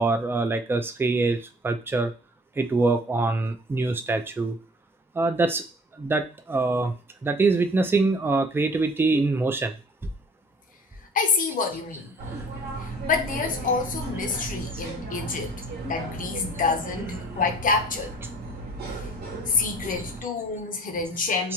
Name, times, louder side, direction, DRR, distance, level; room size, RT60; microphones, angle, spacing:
voice 1, 0.0-1.4 1.6-2.1 2.6-4.5 5.2-5.6 6.0-6.2 6.5-6.9 7.2-9.7 12.3-12.4 17.0-17.5 21.4-21.5, right 3 dB, 10° right, 0.3 m, -24 dB
voice 2, 11.1-12.1 12.8-15.6 15.9-18.2 19.5-21.5, left 4 dB, 45° left, 0.6 m, -27 dB
sound 1, 12.2-20.2, right 2 dB, 55° right, 0.9 m, -35 dB
2.5 x 2.1 x 2.9 m
cardioid pair, 90°, 20 cm